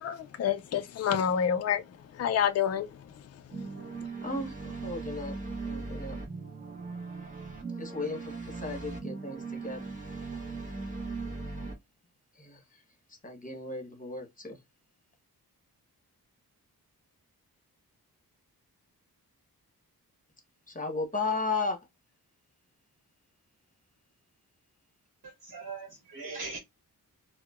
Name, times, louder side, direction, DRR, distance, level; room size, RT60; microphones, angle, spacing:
voice 1, 0.0-1.9 2.1-3.7, left 8 dB, 45° left, 0.4 m, -29 dB
sound 1, 3.5-11.7, right 3 dB, 20° right, 1.1 m, -39 dB
voice 2, 4.2-5.4 5.6-6.2 7.8-9.9 12.3-12.8 13.2-14.6 20.7-21.8, left 3 dB, 20° left, 1.1 m, -35 dB
voice 3, 25.2-26.6, right 3 dB, 55° right, 1.2 m, -40 dB
4.5 x 2.1 x 2.4 m
wide cardioid pair, 100°, 37 cm